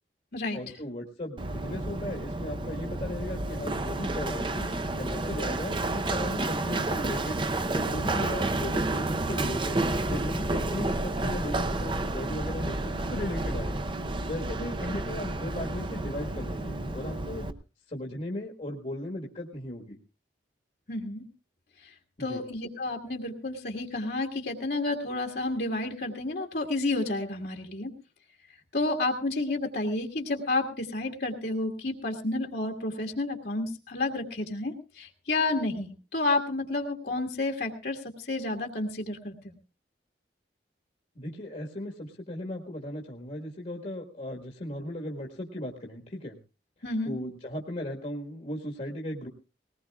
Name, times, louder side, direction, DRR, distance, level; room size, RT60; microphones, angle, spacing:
voice 1, 0.5-4.7 5.0-7.4 7.7-9.8 10.1-13.8 14.3-17.5 17.9-20.0 22.2-22.4 41.1-46.4 47.0-49.3, left 1 dB, 45° left, 0 dB, 1.6 m, -37 dB
Run, 1.4-17.5, right 2 dB, 30° right, 0.7 m, -30 dB
voice 2, 20.9-21.2 21.8-21.9 22.2-27.9 28.7-39.5 46.8-47.1, left 2 dB, 60° left, 2 dB, 1.8 m, -30 dB
20.0 x 18.5 x 2.4 m, 0.31 s
head